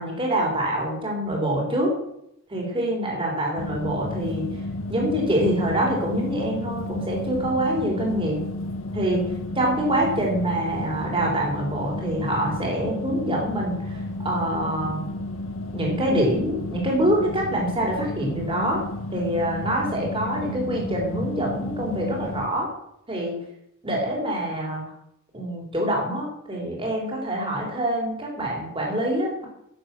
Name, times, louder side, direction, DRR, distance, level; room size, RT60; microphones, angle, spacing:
voice 1, 0.0-1.9 2.5-4.5 4.9-8.4 8.9-9.2 9.5-15.1 15.7-18.8 19.1-22.7 23.1-23.4 23.8-24.8 25.3-29.5, right 1 dB, 25° right, -2 dB, 4.2 m, -25 dB
sound 1, 3.6-22.5, left 1 dB, 70° left, 1.4 m, -32 dB
15.5 x 7.8 x 6.3 m, 0.78 s
head